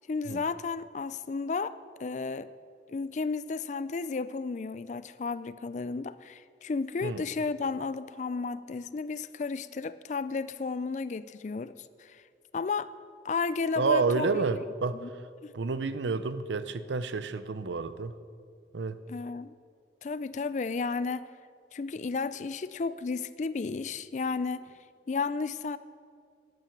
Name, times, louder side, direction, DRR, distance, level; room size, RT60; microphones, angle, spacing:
voice 1, 0.1-1.7 2.0-2.5 2.9-12.2 12.5-12.9 13.2-14.3 15.0-15.1 15.4-15.5 19.1-19.5 20.0-21.3 21.7-24.7 25.1-25.8, left 4 dB, 40° left, 15 dB, 0.4 m, -33 dB
voice 2, 13.8-15.2 15.5-18.2 18.7-19.0, right 4 dB, 80° right, 13 dB, 0.6 m, -29 dB
11.0 x 9.1 x 7.1 m, 2.2 s
head